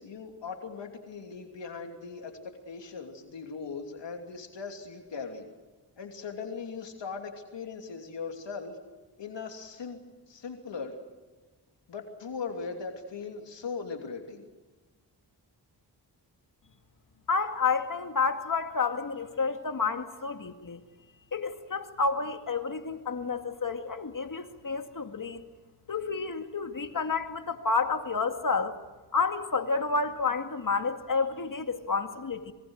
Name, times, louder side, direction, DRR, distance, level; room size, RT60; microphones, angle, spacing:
voice 1, 0.0-2.4 2.7-5.4 6.0-8.8 9.2-10.0 10.3-11.0 11.9-14.4, left 5 dB, 80° left, 3.1 m, -39 dB
voice 2, 17.3-20.8 21.3-25.4 25.9-28.8 29.1-32.5, left 4 dB, 50° left, 2.2 m, -30 dB
26.0 x 23.5 x 6.5 m
cardioid pair, 75°, 42 cm